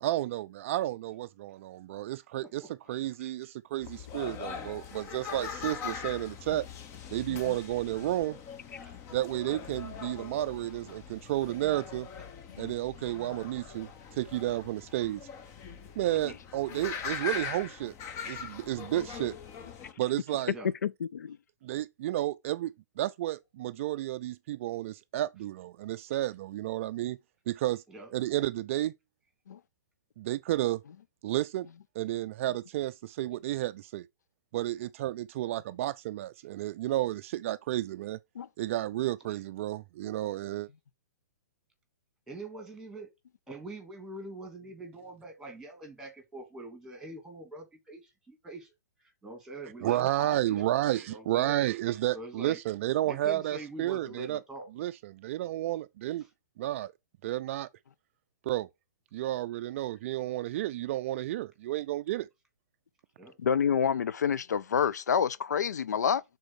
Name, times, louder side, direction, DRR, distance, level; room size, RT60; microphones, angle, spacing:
voice 1, 0.0-6.7 7.1-8.4 9.1-12.1 12.6-15.2 16.0-17.9 18.3-19.3 20.0-20.5 21.6-27.2 27.5-27.8 28.1-28.9 30.2-30.8 31.2-31.7 32.0-34.1 34.5-38.2 38.6-40.7 49.8-54.4 54.8-56.2 56.6-56.9 57.2-57.7 58.5-58.7 59.1-62.3, right 14 dB, 45° right, 0.3 m, -32 dB
sound 1, 3.8-19.9, left 6 dB, 30° left, 1.0 m, -42 dB
voice 2, 20.8-21.4 29.5-29.6 38.4-38.5 63.4-66.2, left 7 dB, 75° left, 0.4 m, -28 dB
voice 3, 42.3-43.1 43.5-48.7 49.0-51.7 52.1-52.6 53.1-54.7 63.2-63.4, right 2 dB, 5° right, 2.5 m, -44 dB
6.3 x 4.0 x 6.1 m
hypercardioid pair, 125°, 9 cm